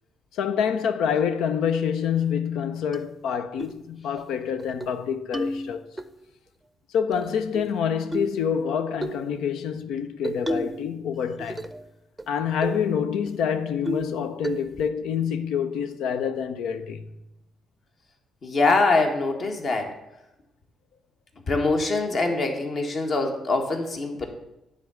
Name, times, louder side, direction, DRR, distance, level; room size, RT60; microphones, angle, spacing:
voice 1, 0.3-5.8 6.9-11.7 12.3-17.0, left 7 dB, 85° left, 0.5 m, -27 dB
sound 1, 2.9-3.0 3.6-3.8 4.2-4.3 4.6-5.0 5.3-6.1 7.1-7.7 8.1-8.4 9.0-9.2 10.2-10.8 11.1-11.8 12.2-12.3 12.6-12.8 13.3-13.4 13.9-14.2 14.4-14.9, right 1 dB, 10° right, 0.6 m, -31 dB
voice 2, 18.4-19.9 21.5-24.3, left 3 dB, 50° left, 1.5 m, -23 dB
9.4 x 3.8 x 6.9 m
cardioid pair, 90°, 0 cm